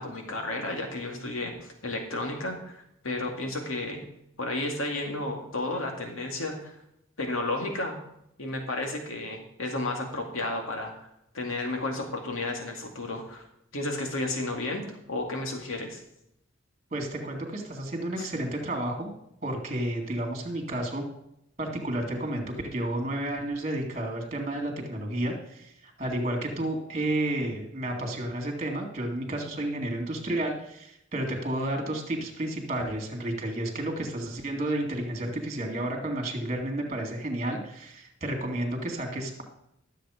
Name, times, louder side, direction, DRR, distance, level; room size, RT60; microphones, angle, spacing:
voice 1, 0.0-4.0 4.4-6.8 7.2-8.0 8.4-10.9 11.3-13.4 13.7-14.8 15.1-16.0 18.2-18.3, left 2 dB, 90° left, 2 dB, 2.2 m, -32 dB
voice 2, 16.9-19.1 19.4-21.0 21.6-39.4, right 1 dB, 35° right, 3 dB, 2.2 m, -31 dB
13.0 x 7.4 x 5.0 m, 0.79 s
head